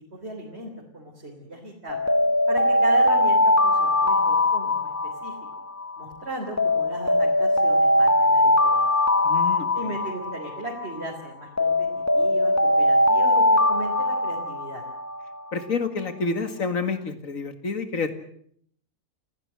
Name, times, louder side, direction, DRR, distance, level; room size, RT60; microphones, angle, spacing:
voice 1, 0.1-2.0 2.5-4.9 5.2-5.3 6.0-8.9 9.7-11.9 12.1-14.8, right 1 dB, 50° right, -1 dB, 3.9 m, -36 dB
Alarm, 1.9-6.0 6.6-11.0 11.6-15.4, left 1 dB, 15° left, 0.9 m, -21 dB
voice 2, 9.2-9.9 15.5-18.1, left 4 dB, 75° left, 9 dB, 2.5 m, -28 dB
29.0 x 16.5 x 7.6 m, 0.65 s
omnidirectional pair, 1.4 m